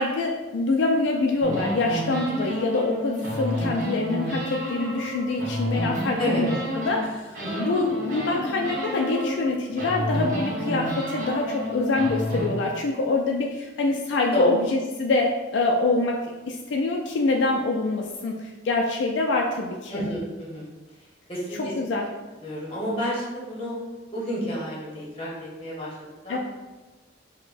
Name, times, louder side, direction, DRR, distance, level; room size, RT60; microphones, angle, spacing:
voice 1, 0.0-20.0 21.6-22.1 26.3-26.4, left 2 dB, 75° left, 1 dB, 0.3 m, -25 dB
sound 1, 1.4-7.0 7.3-9.5 9.8-12.5, equal, 45° right, 1.0 m, -30 dB
voice 2, 19.9-20.7 21.3-21.7 22.4-23.7 24.1-25.9 26.2-26.4, equal, 30° left, -6 dB, 1.0 m, -30 dB
5.1 x 2.1 x 2.5 m, 1.2 s
head